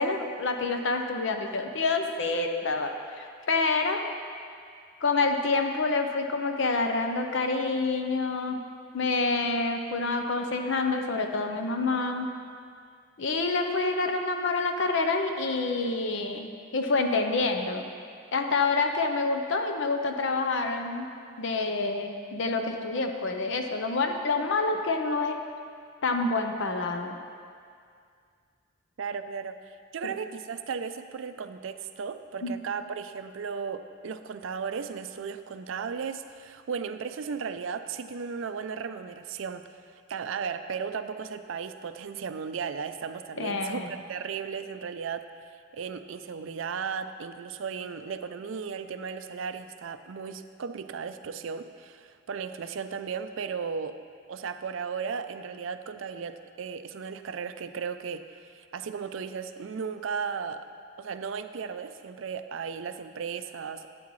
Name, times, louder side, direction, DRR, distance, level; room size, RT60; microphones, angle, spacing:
voice 1, 0.0-4.0 5.0-8.6 8.9-12.3 13.2-17.9 18.3-21.1 21.4-25.4 26.0-27.2 30.0-30.2 32.4-32.5 43.4-43.9, left 3 dB, 65° left, 5 dB, 0.7 m, -27 dB
voice 2, 29.0-29.6 29.9-39.6 40.1-45.2 45.7-53.9 54.3-60.6 61.0-63.9, right 6 dB, 70° right, 10 dB, 0.4 m, -35 dB
12.0 x 8.4 x 3.1 m, 2.2 s
head